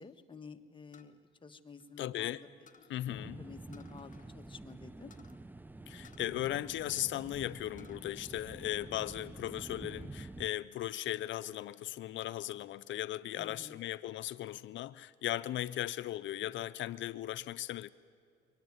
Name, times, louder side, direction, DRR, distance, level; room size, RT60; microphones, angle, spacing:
voice 1, 0.0-2.5 3.0-5.1 13.4-13.8, left 4 dB, 25° left, 7 dB, 1.3 m, -51 dB
sound 1, 0.9-2.3 2.7-3.0 3.7-4.3 4.6-4.7 5.1-5.4 6.0-7.2 7.5-8.0 8.5-9.2, left 6 dB, 40° left, 1.4 m, -62 dB
voice 2, 2.0-2.4 2.9-3.4 5.9-17.9, left 13 dB, 75° left, 15 dB, 0.5 m, -37 dB
sound 2, 3.1-10.5, right 2 dB, 10° right, 0.5 m, -48 dB
23.0 x 18.0 x 9.5 m, 2.5 s
cardioid pair, 90°, 20 cm